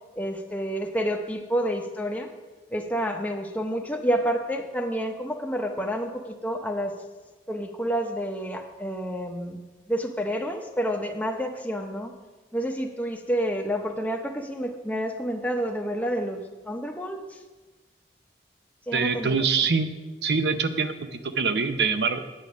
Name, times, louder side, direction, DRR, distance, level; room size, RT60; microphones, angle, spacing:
voice 1, 0.1-2.3 2.7-6.9 7.5-9.6 9.9-12.1 12.5-17.4 18.9-19.3, equal, 10° left, 3 dB, 0.7 m, -29 dB
voice 2, 18.9-19.9 20.2-22.2, right 5 dB, 75° right, 9 dB, 0.8 m, -24 dB
8.7 x 8.3 x 6.2 m, 1.2 s
head